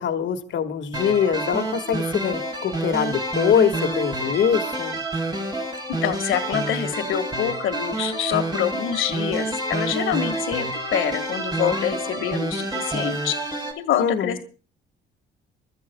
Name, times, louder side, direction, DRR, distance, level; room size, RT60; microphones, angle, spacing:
voice 1, 0.0-5.0 14.0-14.4, left 8 dB, 70° left, 7 dB, 1.7 m, -23 dB
sound 1, 0.9-13.7, right 2 dB, 20° right, 3.9 m, -28 dB
voice 2, 5.9-13.4 13.8-14.4, left 10 dB, 85° left, 8 dB, 1.8 m, -26 dB
28.5 x 13.0 x 2.3 m, 0.35 s
cardioid pair, 90°, 20 cm